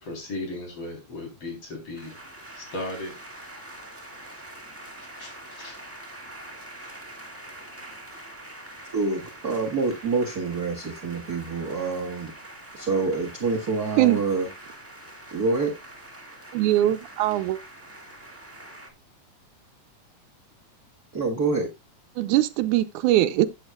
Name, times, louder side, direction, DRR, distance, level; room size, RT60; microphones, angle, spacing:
voice 1, 0.0-2.2 2.5-3.1 4.8-5.8, left 2 dB, 50° left, 4.6 m, -36 dB
sound 1, 1.9-18.9, right 1 dB, 10° right, 1.0 m, -44 dB
voice 2, 8.9-12.3 12.7-14.5 15.3-15.7 21.1-21.7, right 3 dB, 40° right, 1.5 m, -26 dB
voice 3, 16.5-17.6 22.2-23.5, right 14 dB, 85° right, 2.1 m, -21 dB
13.0 x 8.8 x 2.3 m
omnidirectional pair, 3.4 m